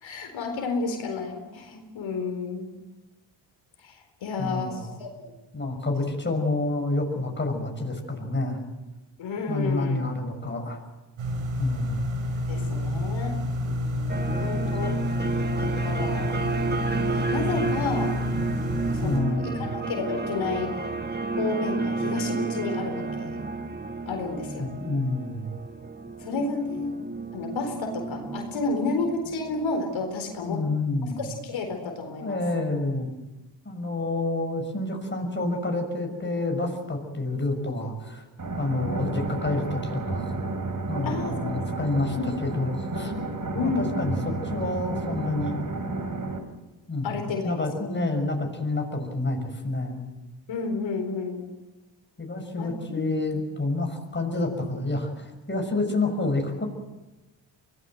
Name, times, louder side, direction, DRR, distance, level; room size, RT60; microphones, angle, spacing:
voice 1, 0.0-2.7 3.8-5.1 9.2-10.0 12.5-13.4 13.6-15.1 15.6-16.4 16.7-18.2 18.9-20.8 21.4-23.4 24.1-24.7 26.2-27.0 27.3-30.6 31.2-32.4 38.8-38.9 41.0-41.6 42.2-42.3 43.5-43.9 47.0-47.9 50.5-51.5 52.6-53.0 53.3-53.4, left 3 dB, 75° left, 3 dB, 4.3 m, -31 dB
voice 2, 4.4-5.0 5.5-8.6 9.5-10.8 11.6-12.0 19.0-19.7 24.6-25.5 30.4-31.2 32.2-33.1 33.6-38.3 38.6-39.8 40.1-40.3 40.9-42.2 42.4-43.1 43.6-45.6 46.9-50.0 52.2-56.7, left 2 dB, 25° left, 3 dB, 6.2 m, -28 dB
sound 1, 11.2-19.2, left 1 dB, 85° right, 4.9 m, -29 dB
sound 2, 14.1-30.4, right 3 dB, 20° right, 2.0 m, -31 dB
sound 3, 38.4-46.4, right 2 dB, 40° right, 4.0 m, -31 dB
24.0 x 19.0 x 7.9 m, 1.1 s
cardioid pair, 65°, 46 cm